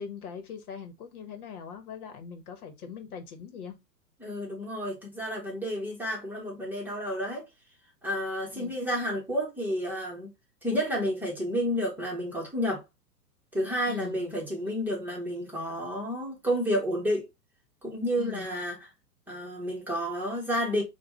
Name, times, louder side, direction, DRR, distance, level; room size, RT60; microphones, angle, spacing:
voice 1, 0.0-3.8 8.5-8.9 13.9-14.3 18.2-18.5, left 7 dB, 60° left, 1.3 m, -41 dB
voice 2, 4.2-7.4 8.0-10.3 10.6-12.8 13.5-17.2 17.8-18.8 19.3-20.8, equal, 5° right, 1.2 m, -30 dB
4.9 x 2.5 x 3.0 m
hypercardioid pair, 120°, 49 cm